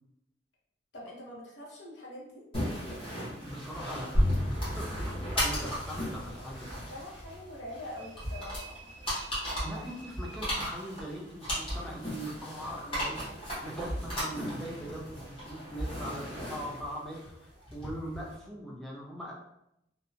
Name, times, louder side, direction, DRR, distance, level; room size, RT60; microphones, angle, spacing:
voice 1, 0.9-2.4 6.7-8.8, left 1 dB, 75° left, -4 dB, 0.8 m, -44 dB
sound 1, 2.5-18.3, equal, 30° left, 0.9 m, -37 dB
voice 2, 3.4-6.8 9.6-19.3, equal, ahead, -4 dB, 0.5 m, -41 dB
sound 2, 4.1-9.2, left 1 dB, 45° left, 0.6 m, -34 dB
sound 3, 8.0-11.3, right 5 dB, 90° right, 0.5 m, -52 dB
2.6 x 2.1 x 2.6 m, 0.81 s
head